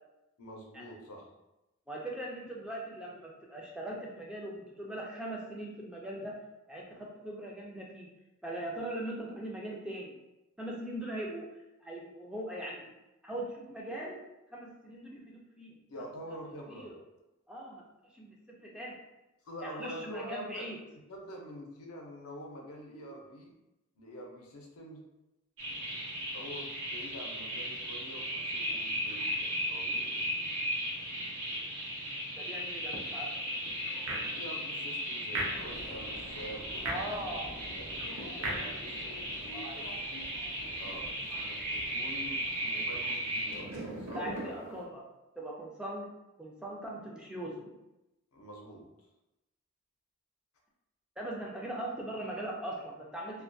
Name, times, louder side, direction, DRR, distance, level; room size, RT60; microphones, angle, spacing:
voice 1, 0.4-1.3 15.9-16.9 19.4-20.8 21.1-23.5 24.0-25.0 26.3-30.6 34.2-39.0 40.8-41.1 41.3-44.5 48.3-48.9, equal, 90° left, -1 dB, 0.6 m, -46 dB
voice 2, 1.9-6.3 6.7-8.1 8.4-10.1 10.6-12.8 13.2-14.2 14.5-15.8 16.7-17.0 17.5-19.0 19.6-20.8 32.4-33.4 36.8-37.5 39.5-39.9 40.2-40.3 44.2-45.1 45.4-46.1 46.4-47.7 51.2-53.4, right 1 dB, 5° right, -3 dB, 0.3 m, -40 dB
sound 1, 25.6-43.6, equal, 90° right, 0.9 m, -36 dB
sound 2, 32.9-44.8, right 1 dB, 65° right, 0.5 m, -43 dB
sound 3, 35.5-42.9, left 1 dB, 50° left, 0.6 m, -49 dB
2.2 x 2.2 x 2.5 m, 0.95 s
head